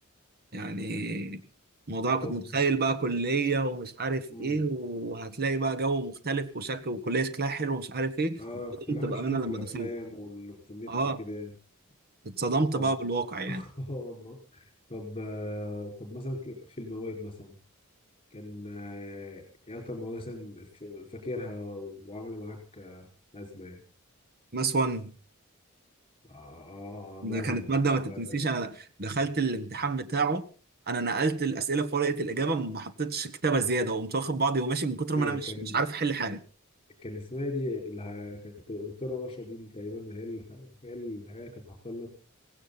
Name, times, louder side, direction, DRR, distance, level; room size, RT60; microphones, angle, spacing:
voice 1, 0.5-1.4 1.9-8.4 8.9-9.9 10.9-11.2 12.2-13.6 24.5-25.1 27.2-30.5 30.9-36.4, right 3 dB, 45° right, 1.4 m, -29 dB
voice 2, 2.2-2.5 4.3-4.6 8.4-11.5 12.7-12.9 13.5-14.6 14.9-17.6 18.3-23.1 23.3-23.8 26.3-28.4 35.1-35.9 37.0-42.1, left 2 dB, 25° left, 5.1 m, -39 dB
17.0 x 16.5 x 4.1 m
head